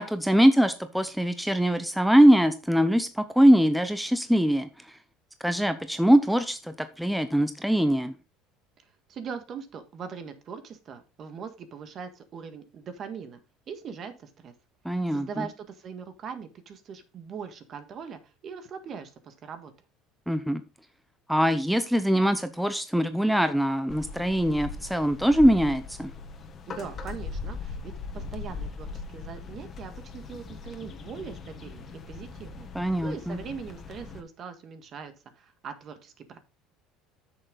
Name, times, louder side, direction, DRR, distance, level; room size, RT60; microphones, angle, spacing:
voice 1, 0.0-5.0 5.4-8.2 14.8-15.5 20.3-20.6 21.3-26.1 32.7-33.4, equal, ahead, 0.7 m, -22 dB
voice 2, 9.1-13.4 13.7-14.5 14.9-19.7 26.7-32.7 33.0-36.4, right 6 dB, 45° right, 1.7 m, -41 dB
sound 1, 23.9-34.2, left 4 dB, 35° left, 1.5 m, -40 dB
8.7 x 6.6 x 3.9 m
supercardioid pair, 110°, 0 cm